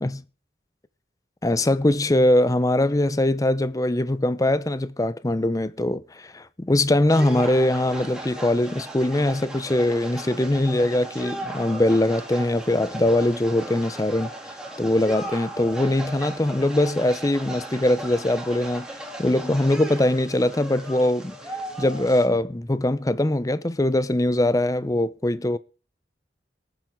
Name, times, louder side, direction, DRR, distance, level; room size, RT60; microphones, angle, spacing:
voice 1, 1.4-14.3 14.8-18.9 19.2-21.4 21.8-25.6, left 1 dB, 20° left, 0.6 m, -22 dB
sound 1, 7.1-22.3, right 1 dB, 5° right, 2.6 m, -37 dB
24.0 x 9.0 x 3.7 m
head